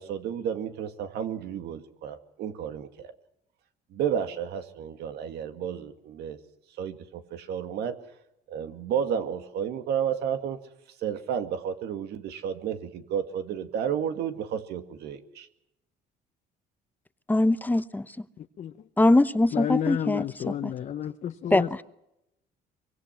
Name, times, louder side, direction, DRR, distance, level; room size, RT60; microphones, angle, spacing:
voice 1, 0.0-3.1 3.9-6.4 6.8-8.0 8.5-10.6 11.0-15.5, right 8 dB, 75° right, 7 dB, 2.1 m, -32 dB
voice 2, 17.3-18.2 19.0-20.7 21.5-21.8, left 2 dB, 10° left, 13 dB, 0.9 m, -23 dB
voice 3, 19.5-21.7, left 10 dB, 50° left, 7 dB, 1.0 m, -30 dB
24.5 x 23.0 x 5.9 m, 0.86 s
cardioid pair, 110°, 17 cm